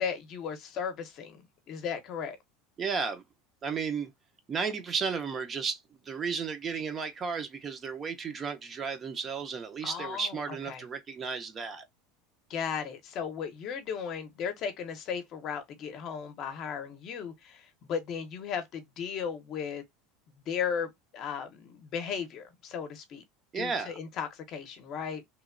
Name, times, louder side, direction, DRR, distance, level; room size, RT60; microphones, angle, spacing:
voice 1, 0.0-1.4 1.7-2.4 9.8-10.4 10.7-10.8 12.5-19.8 20.5-23.2 23.5-25.2, left 7 dB, 45° left, 0.6 m, -36 dB
voice 2, 2.8-3.2 3.6-4.1 4.5-11.8 23.5-23.9, right 5 dB, 25° right, 0.5 m, -33 dB
2.9 x 2.1 x 2.4 m
supercardioid pair, 140°, 0 cm